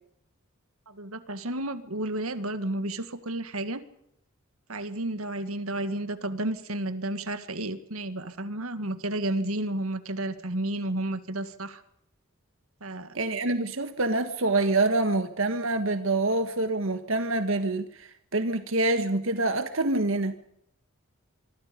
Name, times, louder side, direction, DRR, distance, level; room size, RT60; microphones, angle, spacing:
voice 1, 0.9-3.8 4.7-11.8 12.8-13.2, right 1 dB, 85° right, 2.0 m, -32 dB
voice 2, 13.1-20.3, right 2 dB, 65° right, 1.6 m, -26 dB
25.5 x 25.0 x 5.3 m
head